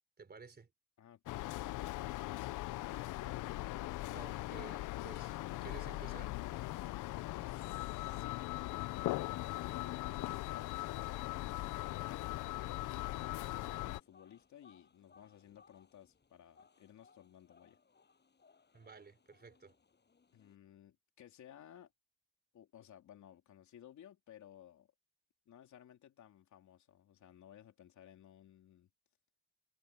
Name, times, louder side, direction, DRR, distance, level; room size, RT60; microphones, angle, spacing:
voice 1, 0.2-0.7 4.1-6.4 18.7-19.7, right 4 dB, 35° right, 4.4 m, -53 dB
voice 2, 1.0-2.0 6.9-8.4 9.2-11.2 11.6-13.3 13.8-17.8 20.3-21.9 22.5-24.9 25.4-28.9, left 10 dB, 70° left, 3.4 m, -58 dB
sound 1, 1.3-14.0, left 18 dB, 85° left, 0.6 m, -40 dB
sound 2, 12.9-20.6, left 5 dB, 35° left, 7.2 m, -67 dB
cardioid pair, 90°, 30 cm